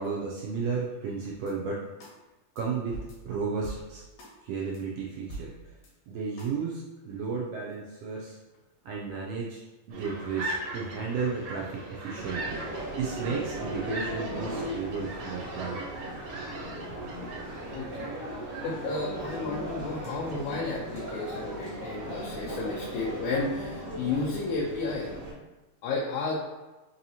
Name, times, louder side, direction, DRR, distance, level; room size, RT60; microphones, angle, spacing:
voice 1, 0.0-1.8 2.6-3.0 3.2-4.0 4.4-5.7 6.1-8.4 8.8-9.6 9.9-15.8, right 5 dB, 85° right, -3 dB, 1.4 m, -33 dB
sound 1, 1.5-1.6 2.0-2.2 2.6-2.7 2.9-4.4 4.7-4.8 5.3-5.9 6.4-6.5, right 2 dB, 70° left, 1.9 m, -43 dB
sound 2, 9.9-20.7, right 2 dB, 65° right, 1.7 m, -40 dB
sound 3, 12.2-25.3, right 1 dB, 50° right, 1.0 m, -37 dB
voice 2, 17.7-18.1 18.6-25.2 25.8-26.4, left 3 dB, 85° left, -4 dB, 2.0 m, -32 dB
4.8 x 2.7 x 2.7 m, 1.1 s
omnidirectional pair, 3.3 m